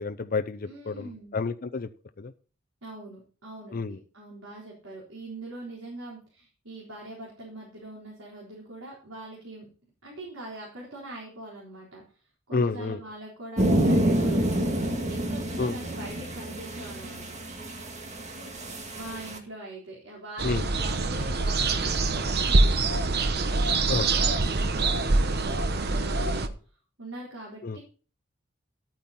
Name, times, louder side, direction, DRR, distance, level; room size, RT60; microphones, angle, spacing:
voice 1, 0.0-1.9 2.2-2.3 3.7-4.0 12.5-13.0 15.6-15.8 20.4-20.6 23.9-24.1 27.6-27.8, left 4 dB, 45° left, 9 dB, 0.6 m, -29 dB
voice 2, 0.7-1.4 2.8-9.7 10.0-12.0 12.5-17.4 18.9-23.4 23.9-26.5 27.0-27.8, right 2 dB, 85° right, -4 dB, 4.2 m, -42 dB
sound 1, 13.6-19.4, right 1 dB, 35° right, 1.9 m, -28 dB
sound 2, 20.4-26.5, right 3 dB, 55° right, 1.0 m, -24 dB
12.0 x 9.1 x 4.2 m, 0.40 s
head